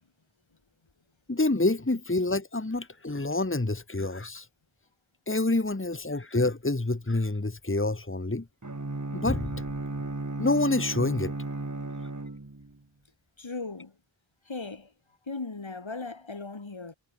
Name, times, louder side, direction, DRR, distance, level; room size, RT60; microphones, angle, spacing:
voice 1, 1.3-4.5 5.3-8.5 9.1-9.6 10.4-11.3, left 2 dB, 25° left, 2.1 m, -27 dB
Bowed string instrument, 8.6-12.8, right 2 dB, 40° right, 3.3 m, -35 dB
voice 2, 13.4-14.0 14.4-14.9 15.3-16.9, left 3 dB, 85° left, 6.5 m, -37 dB
wide cardioid pair, 50°, 45 cm